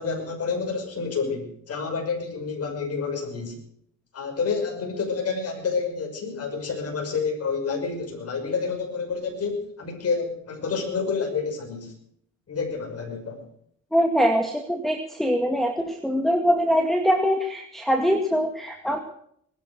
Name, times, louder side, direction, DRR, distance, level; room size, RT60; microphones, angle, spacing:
voice 1, 0.0-3.6 4.1-11.9 12.5-13.4, left 5 dB, 55° left, 2 dB, 6.0 m, -29 dB
voice 2, 13.9-19.0, equal, ahead, 5 dB, 1.9 m, -23 dB
20.5 x 11.5 x 6.2 m, 0.68 s
cardioid pair, 90°, 30 cm